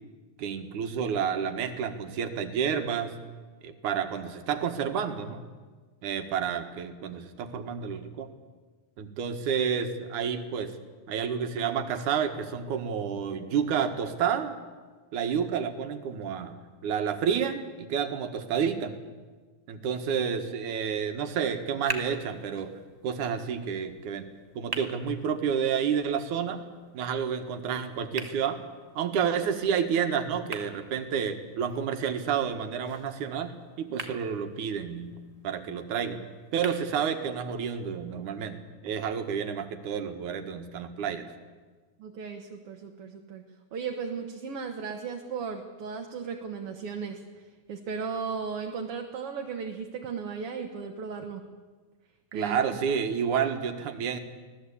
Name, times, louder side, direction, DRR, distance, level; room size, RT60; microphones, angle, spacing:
voice 1, 0.4-3.1 3.6-5.4 6.0-8.3 9.0-10.7 11.1-14.6 15.1-16.6 16.8-18.9 19.7-22.7 23.0-24.3 24.6-26.6 26.9-28.6 29.0-35.2 35.4-36.2 36.5-41.2 52.3-54.2, right 7 dB, 85° right, 7 dB, 3.0 m, -30 dB
sound 1, 21.4-37.4, right 2 dB, 15° right, 1.4 m, -45 dB
voice 2, 42.0-43.4 43.7-51.4 52.3-52.6, right 5 dB, 55° right, 3 dB, 2.1 m, -36 dB
25.5 x 17.5 x 8.5 m, 1.4 s
omnidirectional pair, 3.4 m